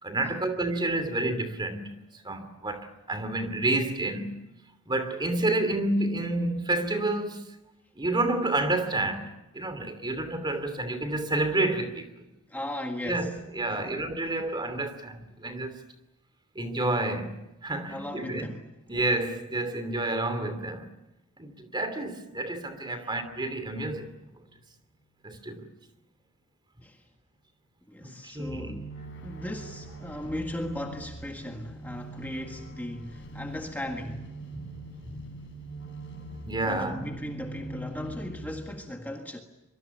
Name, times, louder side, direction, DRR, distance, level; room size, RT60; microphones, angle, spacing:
voice 1, 0.0-1.9 2.2-4.4 4.9-7.5 7.9-12.1 13.0-15.8 16.5-18.5 18.9-20.9 21.4-24.1 25.2-25.7 28.0-28.7 34.5-34.8 35.0-35.3 36.4-37.0, right 2 dB, 20° right, 2.8 m, -29 dB
voice 2, 12.5-13.4 13.7-14.0 14.3-14.6 17.9-18.7 22.9-23.2 26.8-27.1 27.9-28.9 29.2-34.3 36.6-39.4, left 1 dB, 10° left, 1.7 m, -37 dB
sound 1, 23.2-24.5 28.4-38.8, right 1 dB, 55° left, 7.2 m, -42 dB
24.5 x 23.5 x 8.4 m
head